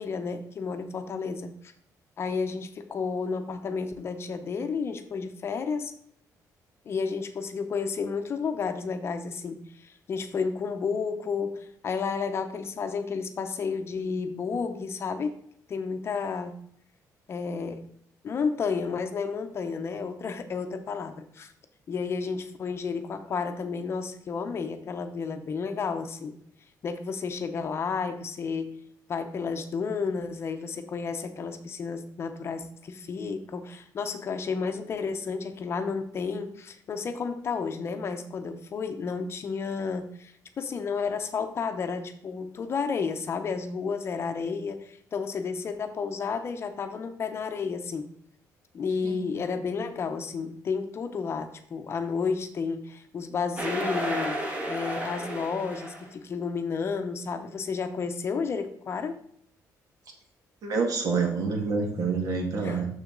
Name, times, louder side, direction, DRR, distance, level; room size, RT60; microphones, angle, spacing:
voice 1, 0.0-1.7 2.2-5.9 6.9-15.4 15.7-16.6 17.3-17.8 18.2-21.5 21.9-26.4 26.8-28.8 29.1-48.1 48.7-59.2 62.6-62.8, left 5 dB, 40° left, 8 dB, 0.7 m, -31 dB
sound 1, 53.6-56.1, right 1 dB, 20° right, 1.4 m, -32 dB
voice 2, 60.6-62.9, right 4 dB, 60° right, 3 dB, 1.7 m, -27 dB
6.9 x 6.3 x 3.8 m, 0.67 s
cardioid pair, 145°, 7 cm